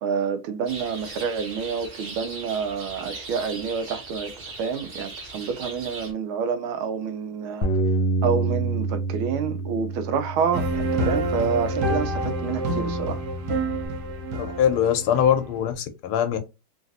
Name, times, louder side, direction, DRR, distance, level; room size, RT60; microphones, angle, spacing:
voice 1, 0.0-4.3 4.6-7.7 8.2-13.2, right 6 dB, 75° right, 1.4 m, -28 dB
sound 1, 0.7-6.1, right 3 dB, 40° right, 1.1 m, -39 dB
Bass guitar, 7.6-13.9, right 3 dB, 70° left, 1.4 m, -29 dB
sound 2, 10.5-15.7, right 1 dB, 60° right, 1.2 m, -27 dB
voice 2, 14.4-16.4, left 9 dB, 85° left, 1.6 m, -22 dB
3.8 x 2.5 x 2.6 m
omnidirectional pair, 2.4 m